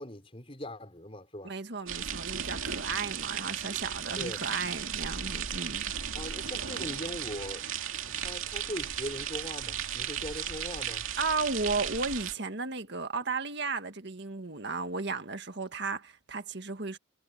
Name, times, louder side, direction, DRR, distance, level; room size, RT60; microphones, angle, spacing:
voice 1, 0.0-1.5 4.2-4.4 6.1-7.7 8.2-11.1, left 1 dB, 25° left, 5.8 m, -40 dB
voice 2, 1.4-5.8 11.2-17.0, right 4 dB, 55° right, 1.8 m, -34 dB
sound 1, 1.9-12.3, right 8 dB, 75° right, 2.5 m, -35 dB
head